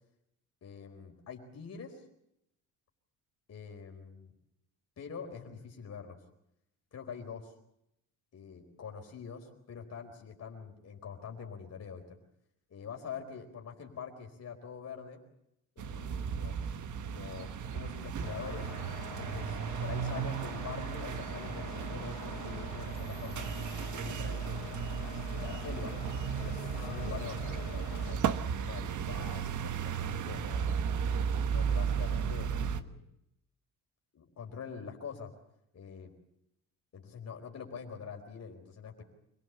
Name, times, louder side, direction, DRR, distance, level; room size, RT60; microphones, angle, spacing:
voice 1, 0.6-2.0 3.5-4.3 5.0-6.2 6.9-7.5 8.3-9.4 9.7-12.2 12.7-15.2 15.8-16.8 17.1-18.7 19.2-23.5 23.9-25.9 26.3-30.7 31.5-33.0 34.1-35.3 35.7-36.1 36.9-39.0, left 6 dB, 45° left, 3 dB, 4.5 m, -45 dB
sound 1, 15.8-32.8, right 7 dB, 55° right, 1.4 m, -35 dB
sound 2, 18.2-28.1, left 13 dB, 90° left, 1.4 m, -46 dB
26.0 x 17.0 x 8.1 m, 0.80 s
cardioid pair, 110°, 37 cm